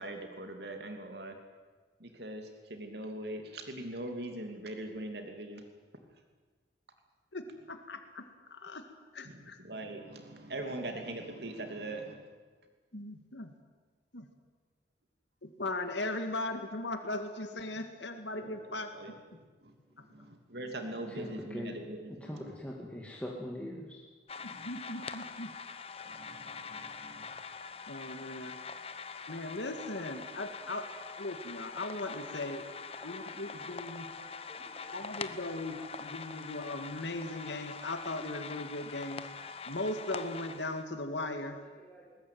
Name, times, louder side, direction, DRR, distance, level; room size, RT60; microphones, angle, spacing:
voice 1, 0.0-1.4 2.0-5.6 9.2-12.3 17.6-17.8 18.4-18.6 18.9-22.5 24.4-24.8 26.0-27.4, right 1 dB, 70° right, 5 dB, 2.8 m, -42 dB
voice 2, 7.3-8.2 8.5-8.8 9.1-9.6 12.9-13.5 14.1-14.2 15.4-18.9 24.4-25.5 27.9-28.6 29.3-30.9 31.2-32.7 33.0-34.1 34.9-39.2 39.7-41.6, left 2 dB, 85° left, 7 dB, 2.0 m, -38 dB
voice 3, 21.1-21.8 22.1-24.0 30.5-30.6 32.1-33.2 33.6-35.4 35.6-35.9 41.8-42.1, left 1 dB, 5° left, -2 dB, 2.3 m, -45 dB
sound 1, 24.3-40.8, left 5 dB, 35° left, 0.9 m, -44 dB
21.0 x 19.0 x 9.4 m, 1.4 s
head